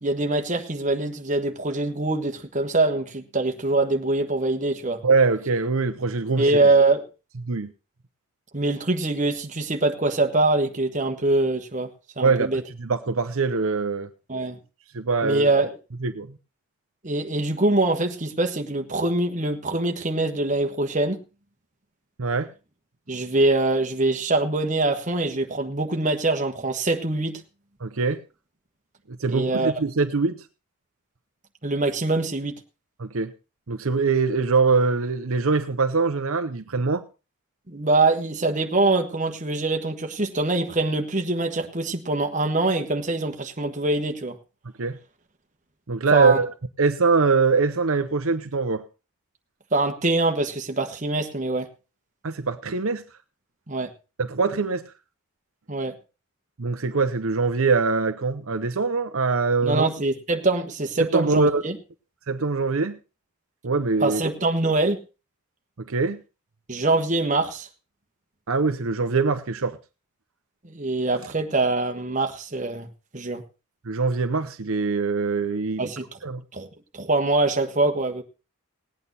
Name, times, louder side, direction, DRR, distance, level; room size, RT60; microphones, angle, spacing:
voice 1, 0.0-5.0 6.4-7.0 8.5-12.6 14.3-14.6 15.2-15.7 17.0-21.2 23.1-27.4 29.3-29.7 31.6-32.5 37.7-44.4 46.1-46.4 49.7-51.7 53.7-53.9 55.7-55.9 59.6-61.7 64.0-65.0 66.7-67.7 70.6-72.9 73.1-73.4 75.8-76.2 76.5-76.7 76.9-78.2, right 2 dB, 35° right, 1.3 m, -24 dB
voice 2, 5.0-6.5 7.4-7.7 12.2-14.1 14.9-15.5 16.0-16.3 22.2-22.5 27.8-28.2 29.2-30.4 33.0-33.3 33.7-37.0 44.8-45.0 45.9-48.8 52.2-53.0 54.2-54.8 56.6-59.8 61.1-61.6 62.3-63.0 63.6-64.2 65.9-66.2 68.5-69.8 73.9-75.9 76.2-76.4, right 4 dB, 70° right, 0.8 m, -23 dB
18.5 x 8.9 x 4.1 m
head